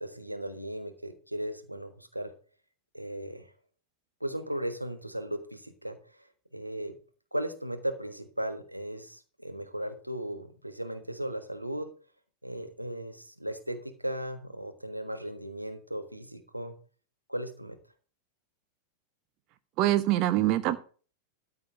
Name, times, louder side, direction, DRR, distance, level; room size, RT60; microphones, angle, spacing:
voice 1, 0.0-2.3 2.9-3.4 4.2-6.0 6.5-7.0 7.3-11.9 12.4-16.7 17.3-17.8, right 1 dB, 90° right, 8 dB, 1.3 m, -36 dB
voice 2, 19.8-20.8, right 14 dB, 40° right, 11 dB, 0.8 m, -24 dB
13.0 x 4.4 x 7.1 m, 0.39 s
figure-of-eight pair, 90°, 0 cm